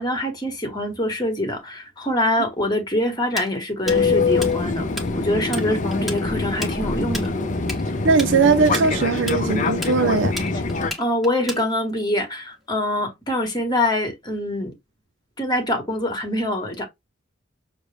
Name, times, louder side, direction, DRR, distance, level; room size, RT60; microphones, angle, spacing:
voice 1, 0.0-4.9 5.1-7.3 11.0-14.7 15.4-16.8, left 1 dB, 20° left, 1.5 m, -24 dB
Tools, 3.4-5.1 5.4-5.7 5.9-12.0, equal, ahead, 1.4 m, -32 dB
Fixed-wing aircraft airplane, 3.9-10.9, left 3 dB, 40° left, 0.6 m, -24 dB
voice 2, 8.0-10.3, right 4 dB, 65° right, 0.5 m, -19 dB
6.4 x 2.2 x 3.4 m
head